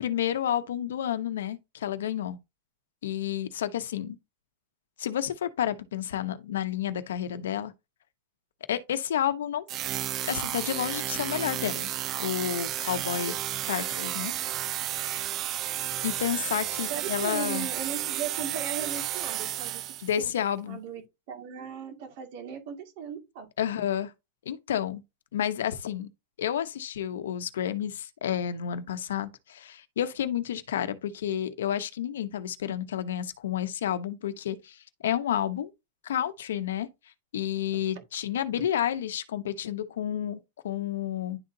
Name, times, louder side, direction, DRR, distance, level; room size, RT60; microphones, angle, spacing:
voice 1, 0.0-2.4 3.0-4.2 5.0-7.7 8.7-9.6 10.3-11.9 12.2-13.3 13.6-14.3 16.0-17.7 20.0-20.8 23.6-24.1 24.4-25.0 25.3-26.1 26.4-35.7 36.0-36.9 37.3-41.4, left 10 dB, 85° left, 0.9 m, -30 dB
sound 1, 9.7-20.2, right 12 dB, 25° right, 0.5 m, -32 dB
voice 2, 16.9-20.3 20.7-21.0 21.3-23.8 37.9-38.0, right 7 dB, 45° right, 2.2 m, -38 dB
11.0 x 4.0 x 2.8 m
supercardioid pair, 165°, 0 cm